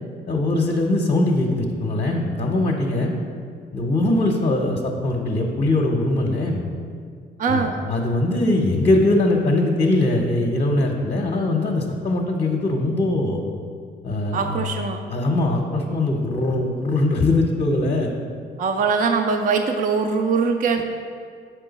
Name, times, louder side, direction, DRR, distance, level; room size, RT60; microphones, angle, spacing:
voice 1, 0.3-3.1 3.7-6.6 7.5-13.4 14.0-14.6 15.1-18.1, left 2 dB, 35° left, 1 dB, 0.7 m, -21 dB
voice 2, 7.4-7.7 14.3-15.0 18.6-20.8, right 5 dB, 45° right, 5 dB, 0.4 m, -22 dB
6.3 x 4.6 x 4.0 m, 2.1 s
cardioid pair, 90°, 20 cm